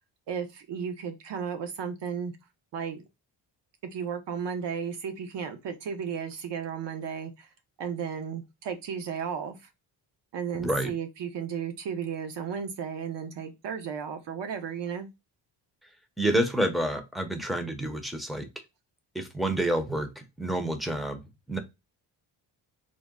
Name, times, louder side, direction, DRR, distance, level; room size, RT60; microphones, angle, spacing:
voice 1, 0.3-2.3 2.7-3.0 3.9-7.5 7.8-9.6 10.3-15.1, right 7 dB, 70° right, 7 dB, 0.9 m, -34 dB
voice 2, 10.5-10.9 16.2-18.5 19.1-21.6, right 1 dB, ahead, 6 dB, 0.6 m, -29 dB
3.8 x 2.1 x 3.5 m, 0.23 s
cardioid pair, 110°, 45 cm